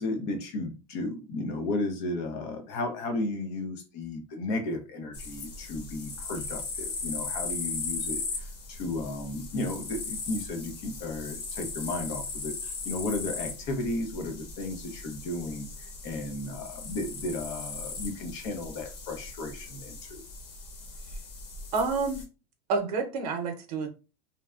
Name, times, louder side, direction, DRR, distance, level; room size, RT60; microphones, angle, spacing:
voice 1, 0.0-20.2, left 2 dB, 40° left, 5 dB, 0.6 m, -34 dB
sound 1, 5.1-22.2, left 4 dB, 85° left, 0.9 m, -38 dB
voice 2, 21.7-22.2 22.7-23.9, right 4 dB, 85° right, 4 dB, 0.7 m, -28 dB
2.6 x 2.2 x 2.3 m, 0.31 s
supercardioid pair, 175°, 20 cm